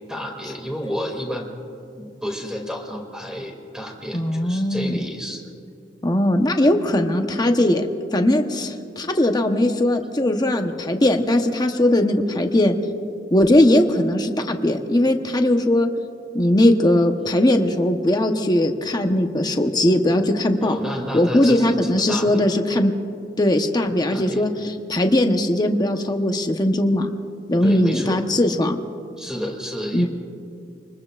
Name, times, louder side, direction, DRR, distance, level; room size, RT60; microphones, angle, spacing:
voice 1, 0.1-1.5 1.9-5.4 20.6-22.4 22.7-22.8 24.1-24.8 27.6-28.2 29.2-30.1, equal, 5° right, 1 dB, 2.5 m, -31 dB
voice 2, 4.1-5.0 6.0-12.7 13.3-15.9 16.3-20.7 21.1-22.9 23.4-27.1 27.5-28.8 29.9-30.1, left 1 dB, 25° left, 5 dB, 1.0 m, -19 dB
27.0 x 20.5 x 2.5 m, 2.5 s
head